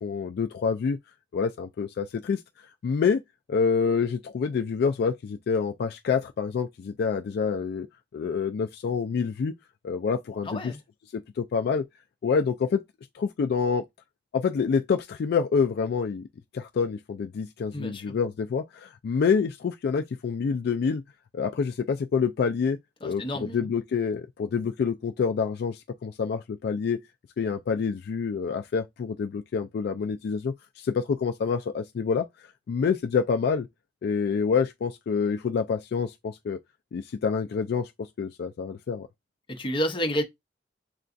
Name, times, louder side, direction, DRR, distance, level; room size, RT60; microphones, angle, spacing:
voice 1, 0.0-1.0 1.3-3.2 3.5-7.9 8.1-9.5 9.8-10.7 11.1-11.9 12.2-12.8 13.1-13.8 14.3-16.3 16.5-21.0 21.3-27.0 27.4-33.7 34.0-36.6 36.9-39.1, left 5 dB, 60° left, 0.3 m, -27 dB
voice 2, 10.4-10.8 17.7-18.1 23.0-23.7 39.5-40.2, equal, 30° left, 0.8 m, -30 dB
6.6 x 2.3 x 2.5 m
head